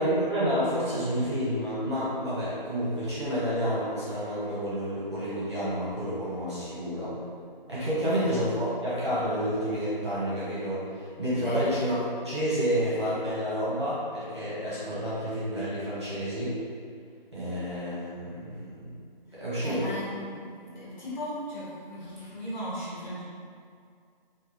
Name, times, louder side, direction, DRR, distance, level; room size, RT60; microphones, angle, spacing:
voice 1, 0.0-7.2 7.7-12.0 12.2-16.6 17.3-19.0 19.3-19.9, equal, 30° right, -11 dB, 0.9 m, -29 dB
voice 2, 8.0-8.3 11.4-11.7 19.6-23.2, equal, 50° left, -9 dB, 1.4 m, -37 dB
4.3 x 2.2 x 3.1 m, 2.2 s
figure-of-eight pair, 175°, 29 cm